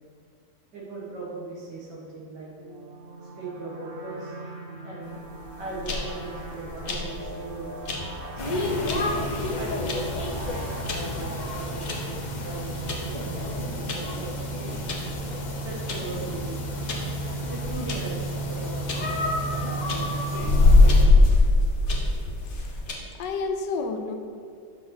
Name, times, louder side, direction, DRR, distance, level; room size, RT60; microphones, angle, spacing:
voice 1, 0.7-2.5 3.2-4.4 4.8-5.2 5.6-7.8 8.3-8.7 9.5-10.1 10.9-14.7 15.6-16.9 17.5-21.3, right 3 dB, 75° right, -5 dB, 2.3 m, -39 dB
sound 1, 2.6-12.9, right 2 dB, 50° right, 0.7 m, -42 dB
sound 2, 5.4-22.9, left 2 dB, 50° left, 1.1 m, -24 dB
sound 3, 8.4-21.0, equal, 70° left, 0.4 m, -31 dB
voice 2, 23.1-24.1, left 4 dB, 85° left, 6 dB, 1.3 m, -30 dB
6.9 x 5.4 x 4.0 m, 2.3 s
omnidirectional pair, 1.9 m